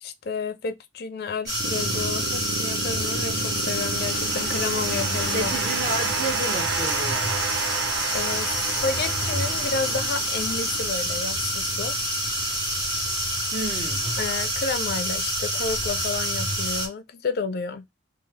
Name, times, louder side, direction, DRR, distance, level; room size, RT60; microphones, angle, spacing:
voice 1, 0.0-5.5 8.1-12.0 14.2-17.8, left 4 dB, 50° left, 0.4 m, -31 dB
sound 1, 1.5-16.9, equal, 20° right, 1.4 m, -27 dB
sound 2, 1.6-12.8, right 5 dB, 65° right, 0.5 m, -32 dB
voice 2, 5.3-7.3 13.5-14.1, right 1 dB, 40° right, 0.9 m, -31 dB
3.1 x 2.4 x 3.7 m
head